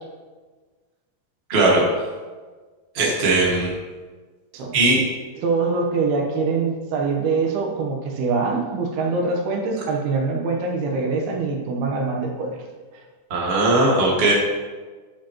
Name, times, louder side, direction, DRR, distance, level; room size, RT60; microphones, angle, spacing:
voice 1, 1.5-1.8 2.9-3.7 4.7-5.0 13.3-14.3, right 2 dB, 35° right, -3 dB, 0.9 m, -18 dB
voice 2, 5.4-12.6, right 4 dB, 90° right, 1 dB, 3.1 m, -24 dB
11.0 x 7.4 x 3.0 m, 1.4 s
omnidirectional pair, 4.4 m